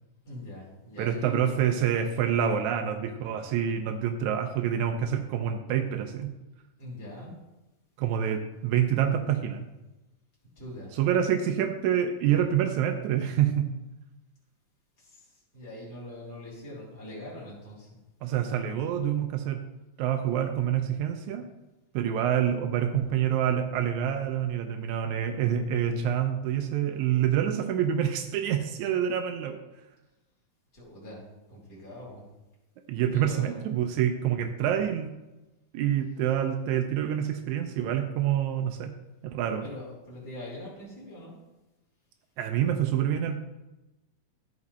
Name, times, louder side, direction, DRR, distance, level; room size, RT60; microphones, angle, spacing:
voice 1, 0.2-1.7 6.8-7.3 10.6-10.9 15.0-15.3 15.5-17.9 30.7-32.3 32.9-33.7 39.6-41.4, left 1 dB, 5° left, -8 dB, 2.8 m, -42 dB
voice 2, 1.0-6.3 8.0-9.6 10.9-13.7 18.2-19.7 20.0-21.5 21.9-29.6 32.9-35.1 35.7-38.9 39.2-39.7 42.4-43.4, right 9 dB, 80° right, 5 dB, 1.7 m, -27 dB
13.5 x 5.0 x 4.2 m, 1.0 s
omnidirectional pair, 4.0 m